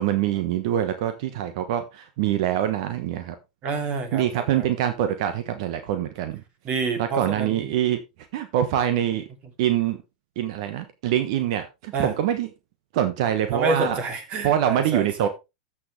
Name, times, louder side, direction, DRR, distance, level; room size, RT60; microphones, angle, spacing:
voice 1, 0.0-3.3 4.1-6.4 7.0-8.0 8.3-9.2 9.6-10.0 10.4-12.5 12.9-14.0 14.4-15.3, right 11 dB, 60° right, 1.2 m, -24 dB
voice 2, 3.6-4.7 6.6-7.7 11.9-12.1 13.5-15.3, right 3 dB, 40° right, 2.7 m, -28 dB
14.0 x 6.2 x 3.3 m
hypercardioid pair, 100°, 4 cm